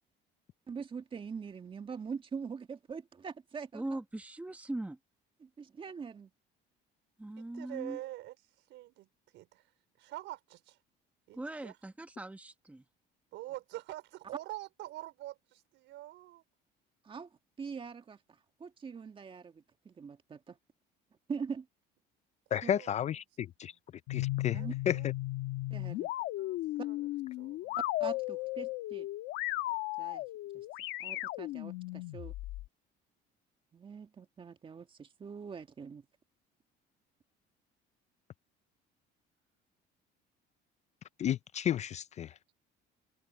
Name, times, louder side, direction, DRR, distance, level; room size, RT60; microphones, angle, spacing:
voice 1, 0.7-4.0 5.4-6.3 17.0-17.3 17.6-18.2 18.6-20.6 21.3-21.7 24.5-24.7 25.7-26.1 26.8-26.9 28.0-29.1 30.0-30.3 30.5-30.7 31.0-32.3 33.7-36.0, right 6 dB, 25° right, 1.9 m, -43 dB
voice 2, 3.7-5.0 7.2-8.0 11.3-12.8, right 2 dB, 5° right, 1.3 m, -40 dB
voice 3, 7.4-8.3 8.7-9.6 10.0-10.8 11.3-11.8 13.3-16.4 22.5-23.1 23.7-23.8 24.5-25.1 26.2-27.1 27.4-27.8, right 16 dB, 75° right, 4.8 m, -46 dB
voice 4, 22.5-23.7 24.1-24.6 24.9-25.1 41.2-42.3, left 10 dB, 35° left, 0.4 m, -32 dB
sound 1, 24.1-32.7, left 17 dB, 80° left, 1.5 m, -36 dB
open air
cardioid pair, 130°, 19 cm